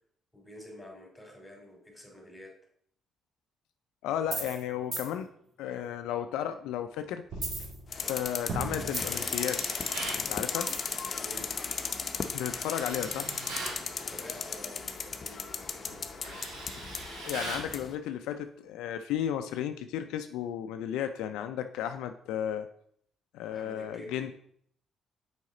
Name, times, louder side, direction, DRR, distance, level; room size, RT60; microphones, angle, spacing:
voice 1, 0.3-2.5 11.2-11.5 14.0-16.4 23.5-24.3, equal, 10° left, 1 dB, 2.8 m, -48 dB
voice 2, 4.0-5.3 5.6-7.2 7.6-7.7 8.0-9.6 10.2-10.7 12.3-13.3 17.2-22.7 23.3-24.3, left 10 dB, 80° left, 8 dB, 0.4 m, -34 dB
sound 1, 4.3-4.6 4.9-5.1 7.3-8.2 8.5-9.3 10.7-11.0, right 2 dB, 50° right, 2.2 m, -35 dB
sound 2, 7.9-17.9, left 5 dB, 45° left, 0.7 m, -36 dB
Tools, 9.0-10.3 12.4-13.8 15.3-15.5 15.9-17.7, right 2 dB, 80° right, 1.9 m, -40 dB
6.3 x 4.9 x 3.8 m, 0.65 s
supercardioid pair, 65°, 0 cm